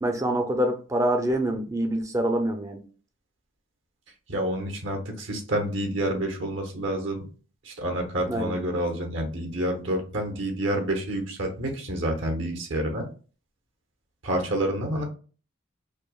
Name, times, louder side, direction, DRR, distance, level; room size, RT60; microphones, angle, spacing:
voice 1, 0.0-2.8 8.3-8.5, right 1 dB, 15° right, 0.4 m, -25 dB
voice 2, 4.3-7.2 7.6-13.1 14.2-15.0, right 1 dB, 75° right, 0.9 m, -28 dB
5.1 x 2.1 x 2.3 m
head